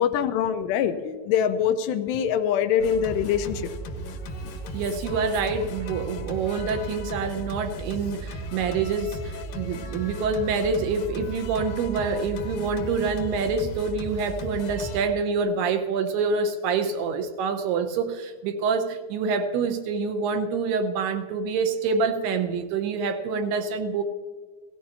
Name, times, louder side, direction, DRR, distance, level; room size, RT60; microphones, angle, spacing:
voice 1, 0.0-3.7, left 8 dB, 85° left, 9 dB, 2.7 m, -24 dB
Singing, 2.8-15.0, right 1 dB, 65° left, 2.3 m, -35 dB
voice 2, 4.7-24.0, right 4 dB, 75° right, 7 dB, 2.6 m, -26 dB
17.0 x 15.5 x 2.8 m, 1.5 s
omnidirectional pair, 5.1 m